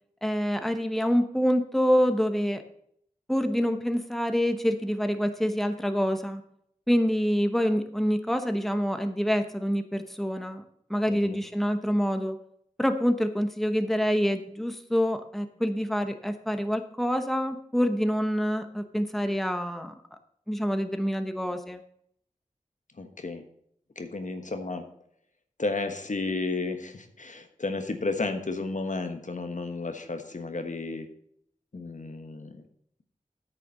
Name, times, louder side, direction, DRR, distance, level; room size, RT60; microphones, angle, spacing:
voice 1, 0.2-2.6 3.3-6.4 6.9-10.6 10.9-12.4 12.8-19.9 20.5-21.8, equal, ahead, 8 dB, 1.0 m, -26 dB
voice 2, 11.1-11.4 23.0-23.4 23.9-24.9 25.6-31.1 31.7-32.6, left 3 dB, 65° left, 6 dB, 1.3 m, -32 dB
9.2 x 6.7 x 6.5 m, 0.69 s
wide cardioid pair, 45°, 14 cm